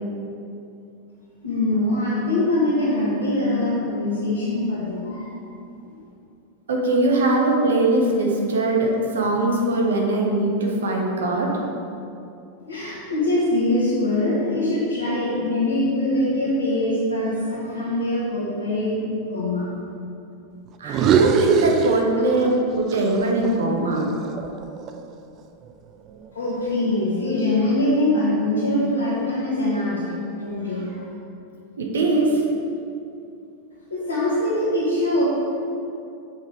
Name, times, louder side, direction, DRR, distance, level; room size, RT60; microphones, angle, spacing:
voice 1, 1.4-5.4 5.9-6.0 12.6-19.0 19.3-19.7 26.3-31.0 33.9-35.2, left 1 dB, 70° left, -10 dB, 1.9 m, -23 dB
voice 2, 6.7-11.5 20.8-24.1 31.8-32.4, right 2 dB, 65° right, 0 dB, 1.4 m, -21 dB
sound 1, 20.8-22.6 22.9-25.1, right 5 dB, 35° right, 0.5 m, -23 dB
7.2 x 6.8 x 5.0 m, 2.6 s
figure-of-eight pair, 90°, 0 cm